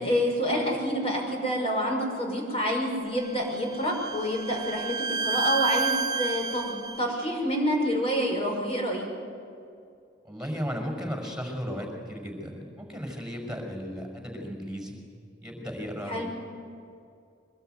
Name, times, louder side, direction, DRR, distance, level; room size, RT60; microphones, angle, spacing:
voice 1, 0.0-9.1 16.1-16.3, equal, 35° left, 0 dB, 5.7 m, -28 dB
Bowed string instrument, 3.2-7.0, right 5 dB, 20° right, 0.7 m, -30 dB
voice 2, 10.2-15.0 15.4-16.3, equal, 5° right, 2 dB, 5.8 m, -35 dB
24.0 x 21.0 x 9.5 m, 2.4 s
head